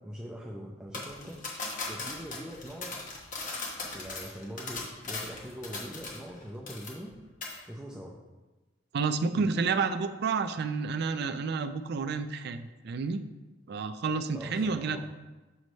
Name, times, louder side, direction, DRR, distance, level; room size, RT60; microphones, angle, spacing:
voice 1, 0.0-1.4 1.9-3.0 3.9-7.1 7.7-8.2 9.3-9.6 14.3-15.0, equal, 5° right, -4 dB, 0.5 m, -42 dB
sound 1, 0.9-6.4 6.7-7.1 7.4-7.6, left 3 dB, 45° left, 1.0 m, -38 dB
voice 2, 8.9-13.2 13.7-15.0, right 4 dB, 60° right, 10 dB, 0.4 m, -30 dB
6.4 x 3.1 x 5.2 m, 1.2 s
head